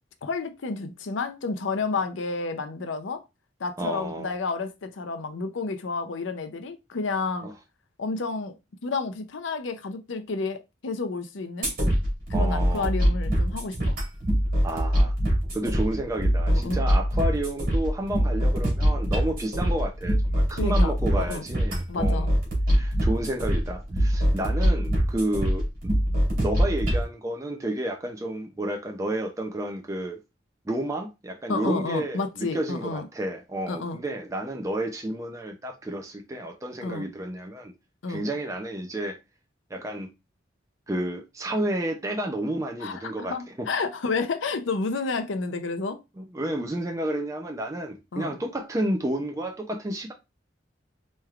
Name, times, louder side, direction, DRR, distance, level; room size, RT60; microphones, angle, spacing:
voice 1, 0.2-3.2 3.6-7.5 8.0-8.5 8.8-11.7 12.3-14.0 16.5-16.8 20.5-21.4 21.9-22.3 31.5-33.1 33.7-34.0 36.8-37.1 38.0-38.2 42.8-46.0 48.1-48.4, left 4 dB, 75° left, 0.6 m, -30 dB
voice 2, 3.8-4.3 7.4-7.5 12.3-12.9 14.6-15.1 15.5-22.3 22.7-25.7 26.4-30.2 30.7-37.7 38.1-39.2 39.7-40.1 40.9-43.7 46.2-50.1, right 1 dB, 15° right, 0.5 m, -31 dB
sound 1, 11.6-27.0, equal, 50° right, 2.1 m, -24 dB
4.3 x 3.2 x 2.4 m
head